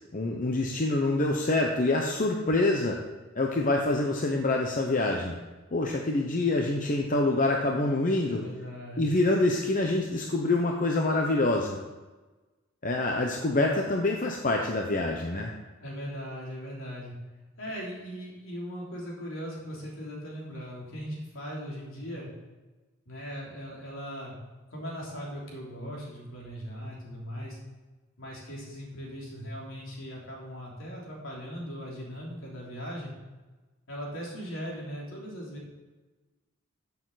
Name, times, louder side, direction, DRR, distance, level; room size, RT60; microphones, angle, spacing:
voice 1, 0.1-3.0 3.3-5.4 5.7-8.4 9.0-11.8 12.8-15.5, left 2 dB, 40° left, 1 dB, 0.9 m, -26 dB
voice 2, 8.2-9.1 15.8-17.1 17.6-22.3 23.0-24.3 24.7-27.6 28.2-33.1 33.9-35.6, equal, 70° left, -3 dB, 3.3 m, -39 dB
14.0 x 7.1 x 4.1 m, 1.2 s
head